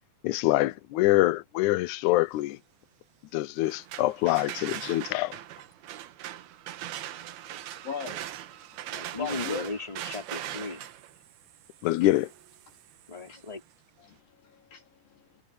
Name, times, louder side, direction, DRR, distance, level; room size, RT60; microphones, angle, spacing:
voice 1, 0.2-2.6 3.3-5.4 11.8-12.3, left 17 dB, 85° left, 1.7 m, -25 dB
sound 1, 3.6-13.5, right 12 dB, 85° right, 3.1 m, -41 dB
voice 2, 7.4-8.2 8.7-9.7 13.1-13.4 14.0-15.4, left 6 dB, 65° left, 5.7 m, -40 dB
voice 3, 8.9-10.8 13.1-13.6, left 3 dB, 10° left, 3.7 m, -36 dB
omnidirectional pair, 4.3 m